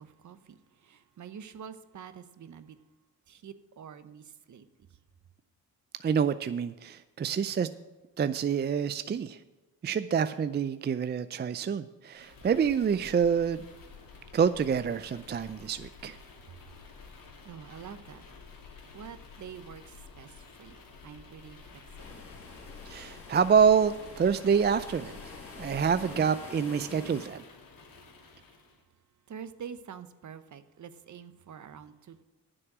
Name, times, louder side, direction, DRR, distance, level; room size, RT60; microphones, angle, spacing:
voice 1, 0.0-2.8 3.3-4.7 17.4-18.2 18.9-22.2 29.3-32.2, right 7 dB, 55° right, 0.9 m, -46 dB
voice 2, 6.0-7.7 8.2-9.4 9.8-13.6 14.3-16.2 22.9-25.1 25.6-27.4, right 7 dB, 30° right, 0.4 m, -27 dB
sound 1, 12.1-28.8, left 5 dB, 70° left, 2.5 m, -50 dB
sound 2, 22.0-27.3, left 3 dB, 40° left, 3.1 m, -47 dB
9.8 x 7.8 x 6.1 m
cardioid pair, 85°, 35 cm